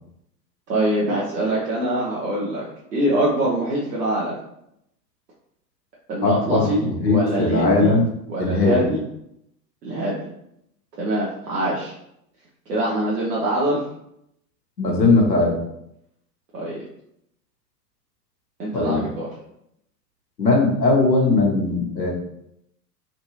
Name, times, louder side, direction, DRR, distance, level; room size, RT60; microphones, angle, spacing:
voice 1, 0.7-2.7 2.9-4.4 6.1-8.0 8.3-9.0 9.8-10.2 11.0-11.9 12.7-13.8 16.5-16.8 18.6-19.3, right 1 dB, 70° right, -5 dB, 1.1 m, -24 dB
voice 2, 6.2-8.1 8.4-8.8 14.8-15.5 18.7-19.1 20.4-22.1, left 3 dB, 85° left, -1 dB, 1.2 m, -19 dB
3.9 x 2.6 x 3.0 m, 0.77 s
figure-of-eight pair, 95°, 49 cm